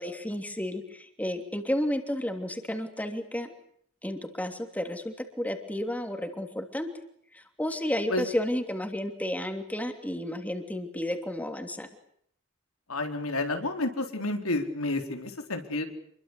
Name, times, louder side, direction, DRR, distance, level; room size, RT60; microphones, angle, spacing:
voice 1, 0.0-3.5 4.0-6.9 7.3-11.9, left 1 dB, 5° left, 6 dB, 3.0 m, -32 dB
voice 2, 12.9-15.9, left 2 dB, 85° left, 5 dB, 4.3 m, -30 dB
28.0 x 22.5 x 8.3 m, 0.67 s
head